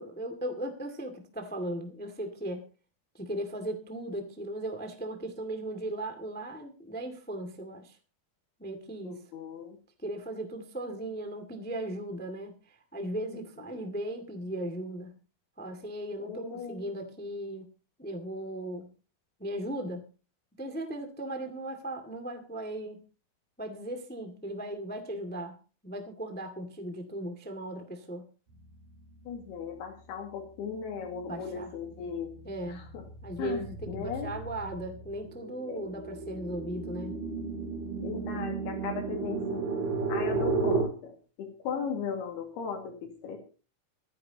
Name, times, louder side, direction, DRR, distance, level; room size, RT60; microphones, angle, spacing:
voice 1, 0.0-2.6 3.1-8.0 8.6-9.2 10.0-15.1 15.6-17.7 18.0-18.9 19.4-20.0 20.6-23.0 23.6-25.6 25.8-28.3 31.3-31.7 32.4-32.8 33.2-37.2, right 1 dB, 15° left, 6 dB, 0.4 m, -37 dB
voice 2, 9.1-9.8 13.3-13.8 16.2-16.9 29.3-32.4 32.6-33.0 33.4-34.3 35.7-35.9 38.0-39.7 40.1-41.1 41.4-43.4, left 6 dB, 85° left, 2 dB, 4.0 m, -37 dB
sound 1, 31.2-31.5 31.9-40.8, right 4 dB, 55° right, 4.6 m, -33 dB
25.5 x 9.9 x 2.9 m, 0.34 s
omnidirectional pair, 4.5 m